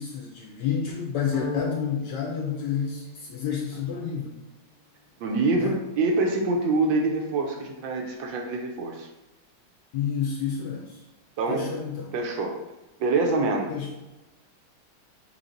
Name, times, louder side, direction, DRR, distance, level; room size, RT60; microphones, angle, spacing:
voice 1, 0.0-4.4 5.6-5.8 9.9-11.0 11.5-12.1 13.7-13.9, left 7 dB, 75° left, 0 dB, 1.1 m, -30 dB
sound 1, 1.3-3.6, left 3 dB, 50° left, 0.5 m, -37 dB
voice 2, 5.2-9.1 11.4-11.7 12.1-12.5 13.0-13.7, right 3 dB, 70° right, 1 dB, 1.3 m, -25 dB
4.1 x 3.1 x 3.8 m, 1.0 s
omnidirectional pair, 2.3 m